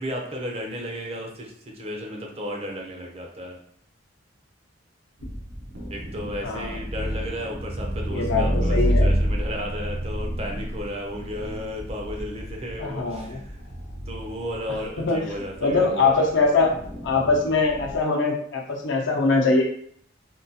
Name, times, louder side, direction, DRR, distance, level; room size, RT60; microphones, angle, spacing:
voice 1, 0.0-3.6 5.9-13.6 14.1-16.6, equal, 30° right, 0 dB, 0.6 m, -34 dB
sound 1, 5.2-18.0, equal, 70° right, 0.9 m, -29 dB
voice 2, 8.1-9.1 12.8-13.4 15.1-15.2 15.6-16.7 17.0-19.6, left 3 dB, 65° left, 0 dB, 0.7 m, -22 dB
3.6 x 2.3 x 2.7 m, 0.63 s
head